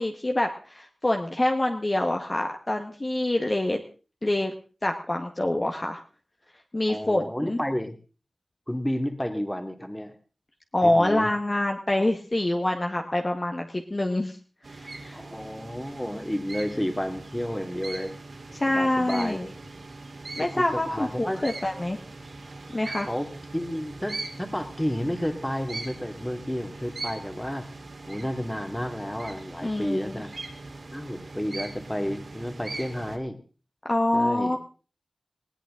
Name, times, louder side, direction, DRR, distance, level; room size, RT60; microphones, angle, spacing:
voice 1, 0.0-3.8 4.2-4.5 4.8-6.0 6.7-7.6 10.7-14.4 14.7-15.2 18.5-19.5 20.4-22.0 22.7-23.1 29.6-30.2 33.9-34.6, left 1 dB, 30° left, 2 dB, 1.6 m, -26 dB
voice 2, 6.9-7.9 8.7-10.2 10.8-11.3 15.1-18.1 18.7-19.5 20.4-21.4 23.1-27.7 28.1-30.3 30.9-33.4 34.1-34.6, equal, 10° left, 6 dB, 2.4 m, -31 dB
sound 1, 14.6-33.2, right 3 dB, 65° right, 3.7 m, -41 dB
19.5 x 17.5 x 3.8 m, 0.37 s
wide cardioid pair, 95°, 0 cm